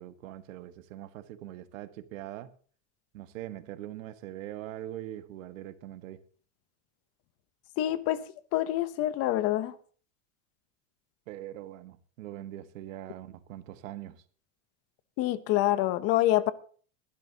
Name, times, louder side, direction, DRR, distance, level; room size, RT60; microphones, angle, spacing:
voice 1, 0.0-2.5 3.1-6.2 11.3-14.2, right 13 dB, 90° right, 1.6 m, -42 dB
voice 2, 7.8-8.2 8.5-9.7 15.2-16.5, left 14 dB, 40° left, 0.8 m, -26 dB
23.5 x 12.0 x 2.9 m
supercardioid pair, 165°, 38 cm